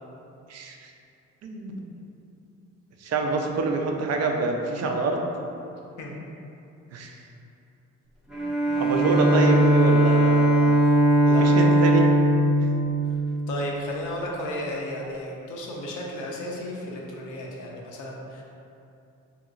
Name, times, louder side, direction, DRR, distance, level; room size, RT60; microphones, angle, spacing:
voice 1, 0.5-0.9 1.4-1.8 3.0-5.3 6.9-7.2 8.8-10.6 11.4-12.0, right 3 dB, 55° right, 2 dB, 0.4 m, -26 dB
Bowed string instrument, 8.3-13.8, right 1 dB, ahead, 0.5 m, -20 dB
voice 2, 11.2-11.7 13.1-13.2 13.5-18.4, left 1 dB, 80° left, -2 dB, 0.6 m, -34 dB
2.9 x 2.9 x 2.4 m, 2.7 s
cardioid pair, 90°, 30 cm